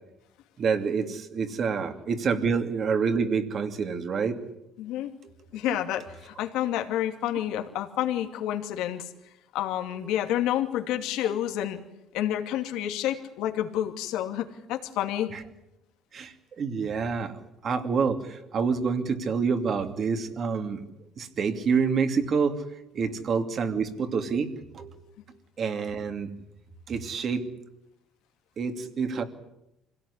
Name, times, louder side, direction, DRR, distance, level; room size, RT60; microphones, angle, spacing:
voice 1, 0.6-4.4 15.3-15.4 16.1-17.3 17.6-20.8 21.2-22.6 22.9-25.0 25.6-26.3 26.9-27.4 28.6-29.2, right 5 dB, 40° right, 7 dB, 2.6 m, -27 dB
voice 2, 4.8-5.1 5.5-9.1 9.5-11.8 12.1-15.3, left 12 dB, 80° left, 5 dB, 2.6 m, -29 dB
26.0 x 17.0 x 9.9 m, 0.88 s
cardioid pair, 140°, 0 cm